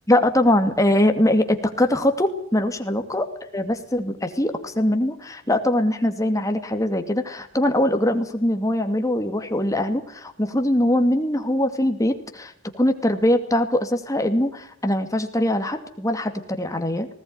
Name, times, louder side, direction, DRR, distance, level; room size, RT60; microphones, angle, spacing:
voice 1, 0.1-3.3 3.5-17.1, left 1 dB, 15° left, 6 dB, 2.4 m, -22 dB
19.5 x 18.0 x 9.6 m, 0.63 s
head